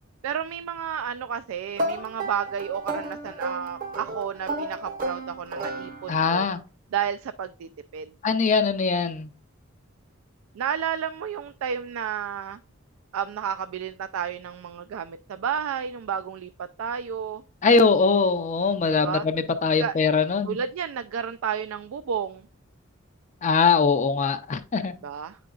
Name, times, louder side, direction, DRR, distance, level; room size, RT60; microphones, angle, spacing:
voice 1, 0.2-6.5 6.9-8.5 10.5-12.6 13.1-17.4 18.9-19.3 19.8-19.9 20.5-22.5 24.8-25.4, right 8 dB, 80° right, 0.3 m, -31 dB
sound 1, 1.8-6.4, right 2 dB, 40° right, 0.7 m, -32 dB
voice 2, 6.1-6.6 8.2-9.3 17.6-20.6 23.4-24.9, left 4 dB, 35° left, 0.4 m, -22 dB
8.3 x 5.1 x 2.3 m
head